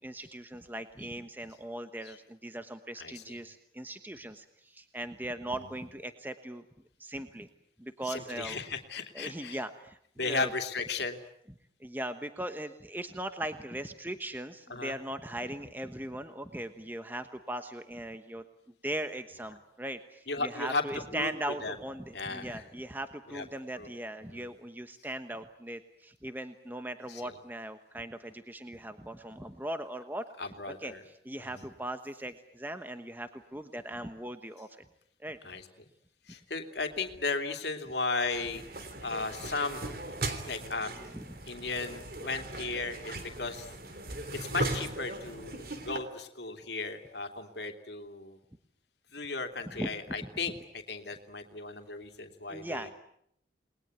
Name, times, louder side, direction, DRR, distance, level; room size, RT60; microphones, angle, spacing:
voice 1, 0.0-6.6 7.0-7.5 7.8-8.6 9.1-10.0 10.2-10.5 11.8-18.4 18.8-30.3 30.8-34.8 35.2-35.4 41.1-41.4 49.8-50.2 52.5-52.9, right 1 dB, 10° right, 8 dB, 1.1 m, -39 dB
voice 2, 3.0-3.4 5.6-5.7 8.1-9.6 10.2-11.2 14.7-14.9 20.3-20.8 21.1-21.3 21.6-21.8 22.1-22.6 23.3-23.4 23.8-23.9 24.3-24.5 27.1-27.4 30.4-31.0 31.5-31.7 35.4-35.6 36.3-38.6 39.0-39.8 40.5-41.0 41.5-43.7 44.3-48.4 49.1-52.9, left 3 dB, 75° left, 6 dB, 2.9 m, -35 dB
sound 1, 38.3-46.0, right 2 dB, 55° right, 3.3 m, -38 dB
29.0 x 21.0 x 9.3 m, 0.73 s
head